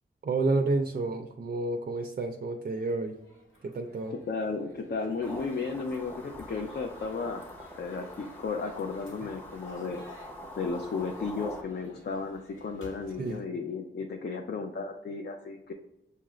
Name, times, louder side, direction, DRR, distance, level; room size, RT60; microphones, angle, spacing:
voice 1, 0.2-3.1 3.6-4.1 9.2-9.3 13.2-13.4, right 3 dB, 45° right, 4 dB, 0.4 m, -30 dB
sound 1, 2.6-13.4, equal, 75° left, 1.6 m, -54 dB
voice 2, 4.3-10.0 10.6-15.7, left 4 dB, 55° left, 4 dB, 0.5 m, -34 dB
sound 2, 5.2-11.6, left 1 dB, 10° left, 0.7 m, -45 dB
6.6 x 2.4 x 3.1 m, 0.89 s
wide cardioid pair, 100°, 21 cm